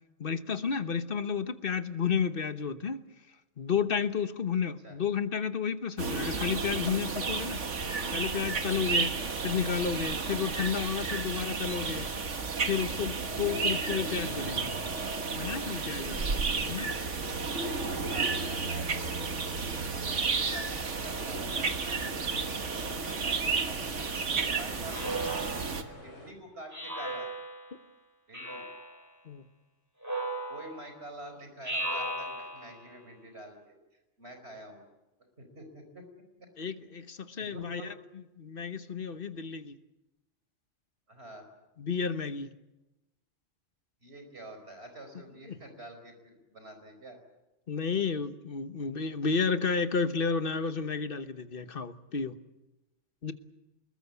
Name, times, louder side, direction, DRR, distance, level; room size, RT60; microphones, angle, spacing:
voice 1, 0.2-3.0 3.6-7.6 8.1-12.1 12.6-14.8 15.3-17.0 29.2-29.4 36.6-37.8 38.4-39.8 41.8-42.5 45.5-45.6 47.7-52.4 53.2-53.3, left 6 dB, 50° left, 1.3 m, -32 dB
sound 1, 6.0-25.8, right 4 dB, 75° right, 1.9 m, -32 dB
sound 2, 13.8-26.3, left 2 dB, 90° left, 4.9 m, -48 dB
voice 2, 17.5-27.3 28.3-28.7 30.5-33.8 34.2-34.8 35.4-36.1 36.4-36.5 37.4-37.9 41.1-41.5 44.0-47.2, right 1 dB, 60° right, 5.1 m, -47 dB
Speech synthesizer, 24.9-26.0 26.7-27.7 28.3-29.0 30.0-30.9 31.6-32.8, right 1 dB, 15° right, 4.8 m, -36 dB
25.5 x 21.0 x 8.3 m
omnidirectional pair, 1.2 m